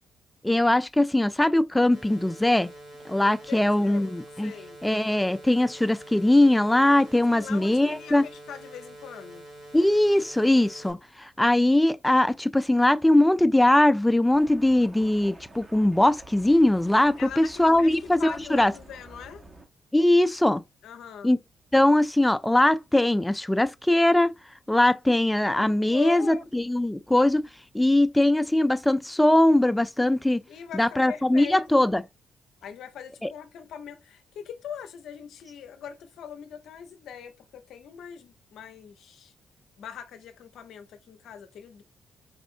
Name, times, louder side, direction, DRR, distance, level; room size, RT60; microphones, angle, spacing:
voice 1, 0.4-2.7 3.1-4.5 4.8-8.2 9.7-18.7 19.9-20.6 21.2-21.4 21.7-24.3 24.7-27.5 27.7-30.4 30.7-32.0 33.2-33.3, left 1 dB, 10° left, 0.3 m, -21 dB
sound 1, 1.9-10.9, right 1 dB, 60° right, 2.1 m, -46 dB
voice 2, 3.5-4.2 4.4-4.8 7.3-9.5 17.2-19.4 20.8-21.3 25.9-26.5 30.5-31.9 32.6-39.3 39.8-41.8, left 8 dB, 70° left, 0.5 m, -41 dB
sound 2, 14.3-19.7, right 2 dB, 35° right, 0.9 m, -49 dB
4.1 x 2.5 x 2.5 m
hypercardioid pair, 45°, 0 cm